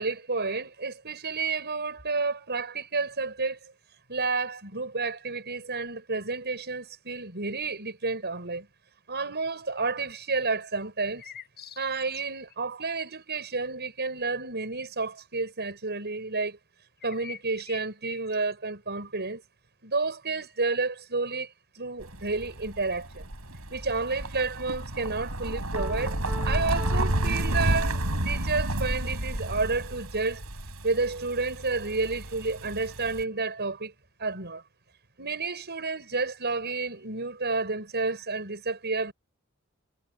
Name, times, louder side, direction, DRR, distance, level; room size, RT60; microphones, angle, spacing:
voice 1, 0.0-3.6 4.1-8.7 9.1-11.2 11.8-16.6 17.0-19.4 19.8-21.5 21.7-23.3 23.7-26.2 26.4-30.4 30.8-33.9 34.2-34.6 35.2-39.1, right 3 dB, 50° right, 6.5 m, -30 dB
sound 1, 11.2-12.6 17.0-18.5, left 8 dB, 50° left, 6.9 m, -45 dB
sound 2, 22.0-33.2, right 1 dB, 80° right, 6.2 m, -31 dB
Piano, 25.8-28.3, right 1 dB, 5° right, 3.7 m, -42 dB
head